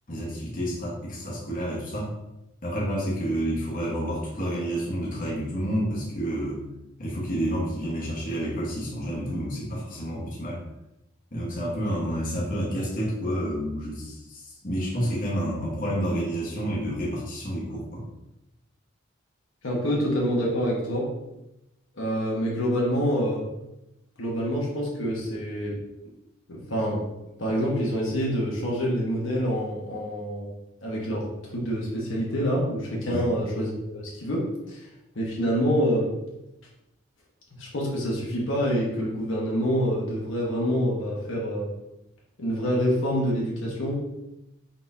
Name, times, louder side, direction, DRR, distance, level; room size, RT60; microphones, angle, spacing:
voice 1, 0.1-2.1 2.6-6.6 7.0-10.6 11.3-18.0 33.1-33.3, equal, 40° left, -6 dB, 1.2 m, -29 dB
voice 2, 19.6-21.1 21.9-23.4 24.2-25.8 26.5-27.0 27.4-30.5 30.8-31.2 31.5-34.9 35.1-36.1 37.5-41.7 42.4-44.2, equal, 75° left, -4 dB, 1.1 m, -26 dB
4.2 x 4.0 x 2.7 m, 0.93 s
head